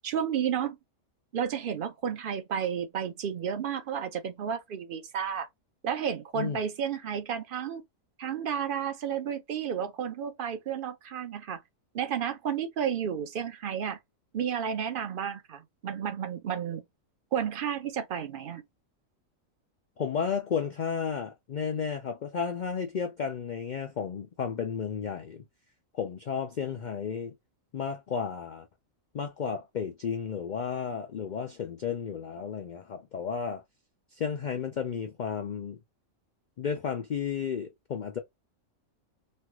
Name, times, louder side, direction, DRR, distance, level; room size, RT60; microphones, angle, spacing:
voice 1, 0.0-0.8 1.3-5.5 5.8-7.8 8.2-11.6 11.9-14.0 14.3-16.8 17.3-18.6, right 8 dB, 55° right, 0.6 m, -32 dB
voice 2, 20.0-25.4 25.9-27.3 27.7-28.7 29.1-33.6 34.1-35.8 36.6-38.2, left 6 dB, 75° left, 0.4 m, -33 dB
3.2 x 2.3 x 2.9 m
omnidirectional pair, 1.4 m